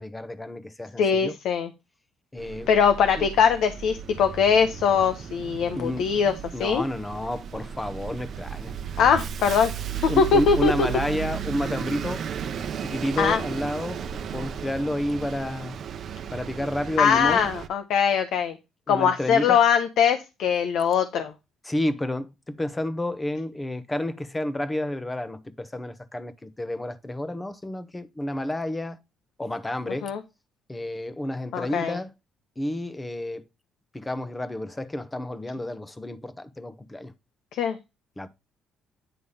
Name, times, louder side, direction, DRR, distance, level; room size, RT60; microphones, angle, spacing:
voice 1, 0.0-1.3 2.3-2.7 3.2-3.3 5.8-6.0 6.5-8.7 10.1-12.2 12.8-14.0 14.3-15.8 16.3-17.5 18.9-19.6 21.6-22.3 22.6-29.0 29.4-30.1 30.7-32.1 32.6-33.4 33.9-37.1 38.2-38.3, left 1 dB, 15° left, 1.0 m, -30 dB
voice 2, 1.0-1.7 2.7-6.3 6.6-6.8 9.0-10.9 13.2-13.4 17.0-18.6 18.9-21.3 30.0-30.2 31.5-32.0 37.5-37.8, left 7 dB, 75° left, 0.9 m, -22 dB
Bus, 2.4-17.7, right 8 dB, 55° right, 0.7 m, -35 dB
9.8 x 3.4 x 5.6 m
cardioid pair, 105°, 0 cm